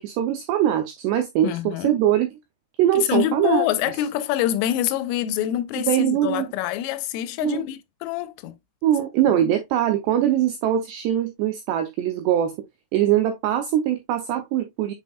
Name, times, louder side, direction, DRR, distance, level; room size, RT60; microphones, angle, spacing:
voice 1, 0.0-1.6 1.8-2.3 2.8-3.7 5.8-6.5 7.4-7.6 8.8-12.5 12.9-14.9, right 11 dB, 85° right, 2.4 m, -22 dB
voice 2, 1.4-2.0 2.9-8.5, left 12 dB, 90° left, 3.3 m, -25 dB
7.8 x 5.4 x 2.3 m
omnidirectional pair, 5.7 m